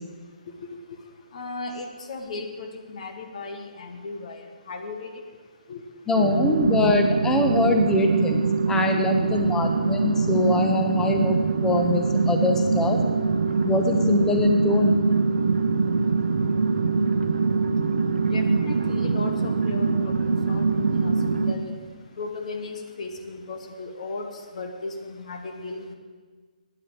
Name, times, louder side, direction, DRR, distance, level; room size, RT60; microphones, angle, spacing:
voice 1, 1.3-4.4 4.7-5.1 5.7-5.8 9.4-9.5 18.3-21.7 22.2-24.3 24.6-25.9, left 3 dB, 50° left, 5 dB, 1.3 m, -36 dB
voice 2, 6.1-11.4 11.6-13.0 13.6-15.0, left 2 dB, 10° left, 4 dB, 1.1 m, -23 dB
sound 1, 6.1-21.5, right 4 dB, 75° right, 0.9 m, -23 dB
9.5 x 9.2 x 8.6 m, 1.5 s
figure-of-eight pair, 140°, 5 cm